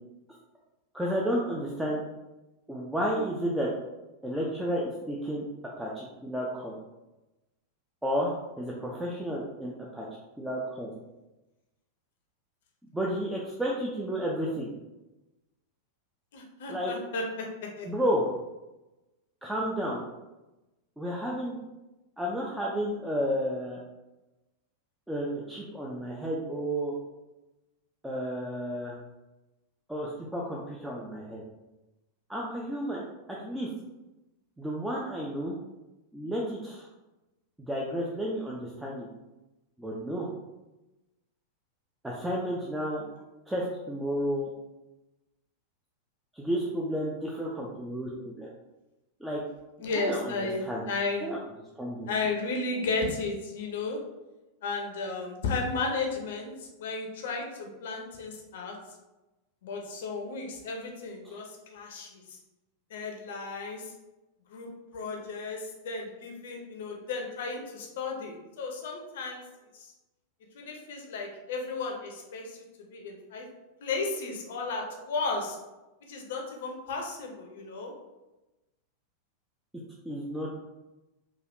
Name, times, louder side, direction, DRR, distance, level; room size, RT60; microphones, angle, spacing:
voice 1, 0.9-2.0 2.7-3.7 4.2-5.5 5.8-6.8 8.0-10.1 10.4-10.9 12.9-14.7 16.7-16.9 17.8-18.3 19.4-20.0 21.0-21.6 22.2-23.8 25.1-26.9 28.0-28.9 29.9-31.4 32.3-33.7 34.6-35.5 36.1-36.9 37.6-39.1 39.8-40.3 42.0-43.0 43.5-44.5 46.3-48.5 49.2-49.4 49.9-50.8 51.2-51.4 51.8-52.1 61.2-61.4 80.0-80.5, equal, 5° right, -4 dB, 0.4 m, -32 dB
voice 2, 16.3-17.5 17.8-17.9 49.8-50.6 50.9-51.3 52.1-54.0 54.6-58.8 59.6-62.2 62.9-63.9 64.5-69.4 69.7-69.9 70.5-72.6 72.9-73.4 73.8-75.6 76.1-77.9, left 3 dB, 55° left, 1 dB, 0.5 m, -34 dB
3.2 x 2.3 x 2.5 m, 1.0 s
figure-of-eight pair, 90°, 0 cm